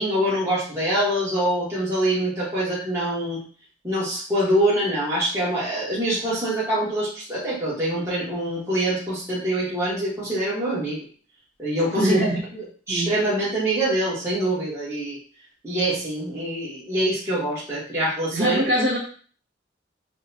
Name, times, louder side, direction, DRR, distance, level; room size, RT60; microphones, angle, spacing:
voice 1, 0.0-3.4 3.8-11.0 11.6-12.2 12.5-15.2 15.6-18.7, right 1 dB, 15° right, -9 dB, 1.2 m, -25 dB
voice 2, 12.0-12.4 12.9-13.1 18.3-19.0, equal, 55° right, -5 dB, 1.8 m, -22 dB
6.3 x 2.2 x 2.7 m, 0.43 s
head